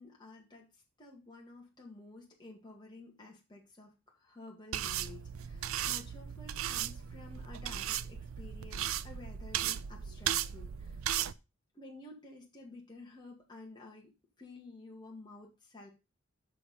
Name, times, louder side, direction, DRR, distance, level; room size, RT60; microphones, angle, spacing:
voice 1, 0.0-11.0 11.7-15.9, left 2 dB, 20° left, -1 dB, 1.9 m, -52 dB
sound 1, 4.7-11.3, right 10 dB, 90° right, 0.5 m, -36 dB
7.0 x 6.6 x 5.4 m, 0.28 s
head